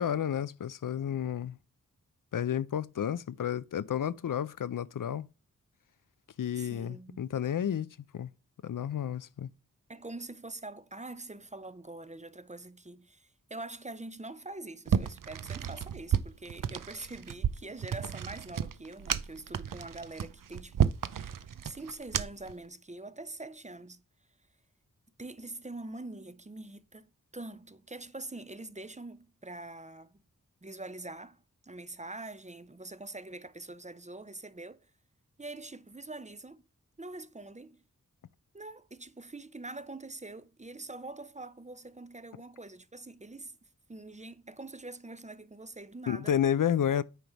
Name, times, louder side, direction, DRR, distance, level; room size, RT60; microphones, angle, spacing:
voice 1, 0.0-1.6 2.3-5.3 6.4-8.3 8.6-9.5 46.1-47.0, left 9 dB, 70° left, 0.5 m, -31 dB
voice 2, 6.6-7.2 9.9-24.0 25.2-30.2 30.6-34.8 35.4-36.6 37.0-37.8 38.5-43.6 43.9-46.3, right 2 dB, 20° right, 0.6 m, -44 dB
sound 1, 14.9-22.5, right 8 dB, 75° right, 0.6 m, -32 dB
9.2 x 3.3 x 5.8 m
wide cardioid pair, 70°, 33 cm